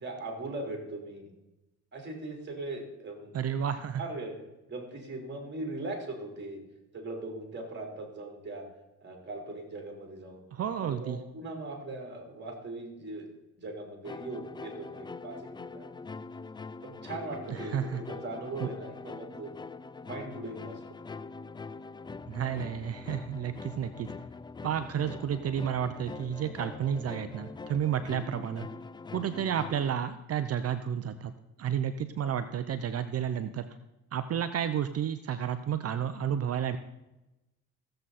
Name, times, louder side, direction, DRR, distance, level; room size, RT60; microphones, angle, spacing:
voice 1, 0.0-1.3 1.9-3.3 4.0-4.4 4.7-6.6 6.9-8.7 9.0-10.4 10.8-13.3 13.6-16.0 16.8-19.5 20.0-20.8, right 2 dB, 35° right, 2 dB, 3.6 m, -40 dB
voice 2, 3.3-4.0 10.5-11.2 17.5-18.0 18.6-18.7 22.3-24.1 24.6-28.7 29.1-31.3 31.6-33.6 34.1-36.8, right 9 dB, 55° right, 10 dB, 0.7 m, -31 dB
sound 1, 14.0-30.0, left 4 dB, 15° left, 0.3 m, -43 dB
16.0 x 7.8 x 4.2 m, 0.98 s
cardioid pair, 90°, 30 cm